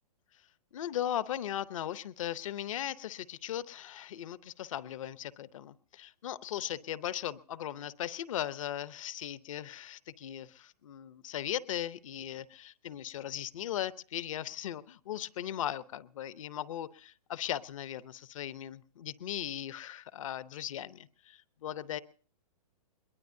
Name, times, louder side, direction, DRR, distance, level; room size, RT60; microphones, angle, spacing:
voice 1, 0.7-22.0, left 11 dB, 55° left, 0.7 m, -38 dB
22.0 x 21.0 x 2.7 m
hypercardioid pair, 155°, 20 cm